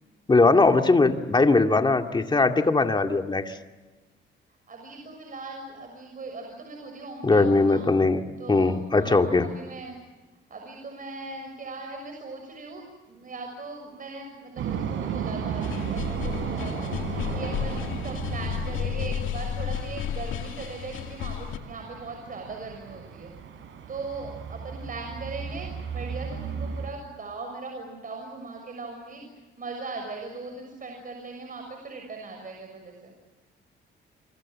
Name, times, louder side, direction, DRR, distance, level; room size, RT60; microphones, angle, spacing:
voice 1, 0.3-3.5 7.2-8.2 8.5-9.5, left 3 dB, 20° left, 5 dB, 2.3 m, -20 dB
voice 2, 4.7-7.9 8.4-10.0 10.5-23.3 23.9-33.1, right 3 dB, 45° right, 3 dB, 6.7 m, -39 dB
sound 1, 14.6-26.9, right 7 dB, 75° right, 4.0 m, -35 dB
sound 2, 15.6-21.6, left 9 dB, 80° left, 2.3 m, -32 dB
28.5 x 25.5 x 7.5 m, 1.2 s
cardioid pair, 90°, 20 cm